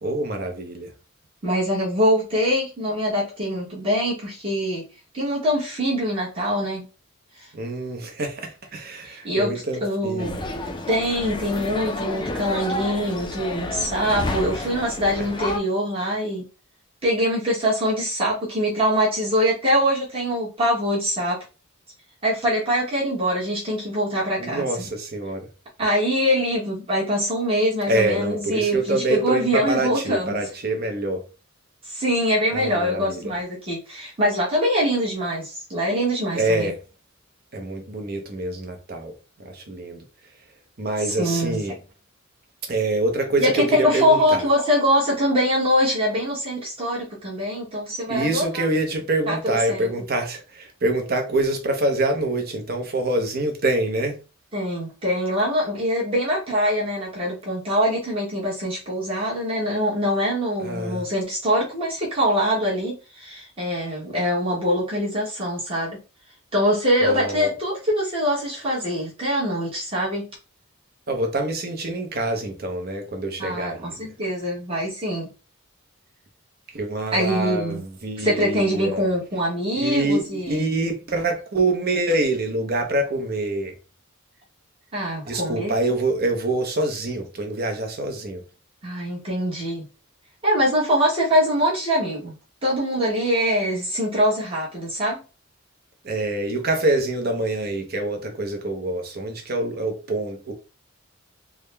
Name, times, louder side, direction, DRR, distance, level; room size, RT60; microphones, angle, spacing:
voice 1, 0.0-0.9 7.5-10.4 24.4-25.5 27.9-31.2 32.5-33.3 36.3-36.8 37.5-40.0 40.8-41.8 42.7-44.4 48.1-54.2 60.6-61.1 67.0-67.5 71.1-74.1 76.7-79.1 79.7-83.7 85.2-88.4 96.0-100.5, right 2 dB, 45° right, 0.8 m, -25 dB
voice 2, 1.4-4.8 5.1-6.9 7.4-7.5 9.0-9.5 9.8-10.4 10.9-16.4 17.0-21.4 22.2-24.9 25.8-30.4 31.8-36.7 41.2-41.6 43.4-48.6 49.3-49.9 54.5-66.0 66.5-70.3 73.4-75.3 77.1-77.8 78.2-80.7 84.9-85.9 88.8-89.8 90.4-92.4 92.6-95.2, equal, 25° right, 1.2 m, -23 dB
sound 1, 10.2-15.6, left 2 dB, 20° left, 0.4 m, -30 dB
3.6 x 2.2 x 3.3 m
head